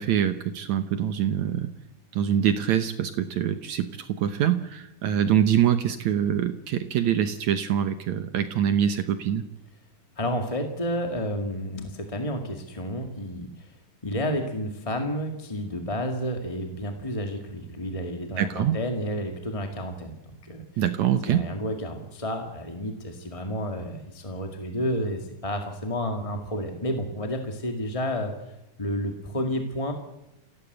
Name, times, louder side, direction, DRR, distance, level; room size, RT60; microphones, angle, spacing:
voice 1, 0.0-1.7 2.1-9.5 18.4-18.8 20.8-21.5, right 9 dB, 65° right, 10 dB, 2.1 m, -24 dB
voice 2, 10.1-13.7 14.0-20.6 21.3-28.5 28.8-29.9, equal, 15° left, 4 dB, 1.2 m, -31 dB
26.0 x 17.0 x 8.0 m, 0.91 s
omnidirectional pair, 4.0 m